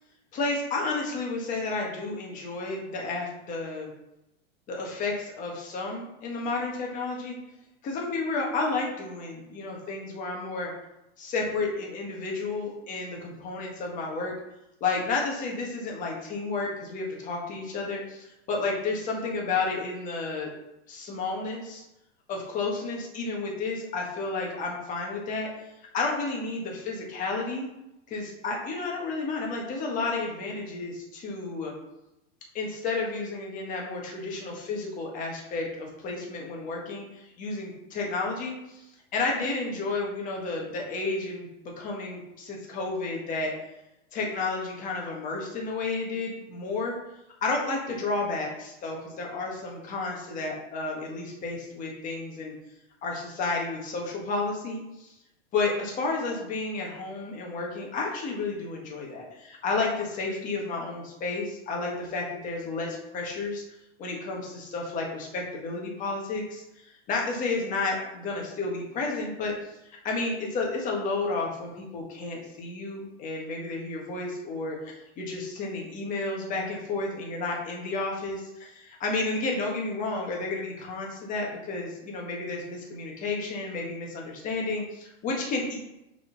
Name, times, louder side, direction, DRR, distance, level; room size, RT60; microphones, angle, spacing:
voice 1, 0.3-3.9 4.7-7.4 7.8-10.7 11.2-14.3 14.8-20.5 20.9-21.8 22.3-25.7 25.9-27.7 28.1-31.7 32.5-38.9 39.1-43.5 44.1-47.0 47.4-52.5 53.0-55.1 55.5-63.6 64.0-85.7, left 3 dB, 20° left, -1 dB, 1.6 m, -31 dB
6.8 x 4.2 x 5.8 m, 0.89 s
supercardioid pair, 160°, 36 cm